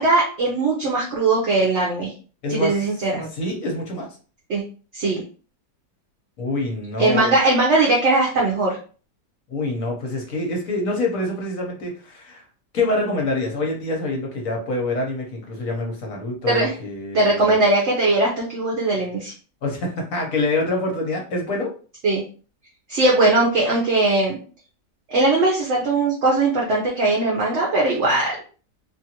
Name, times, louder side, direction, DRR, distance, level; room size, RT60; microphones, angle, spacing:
voice 1, 0.0-2.1 2.5-3.3 4.5-4.6 4.9-5.2 7.0-8.8 16.5-16.7 17.1-19.3 22.0-22.2 22.9-24.4 25.1-28.4, right 2 dB, 55° right, -3 dB, 0.8 m, -19 dB
voice 2, 2.4-2.8 3.3-4.1 6.4-7.4 9.5-12.4 12.7-17.5 19.6-21.7, left 2 dB, 60° left, 0 dB, 1.1 m, -26 dB
2.9 x 2.5 x 2.8 m, 0.39 s
omnidirectional pair, 1.8 m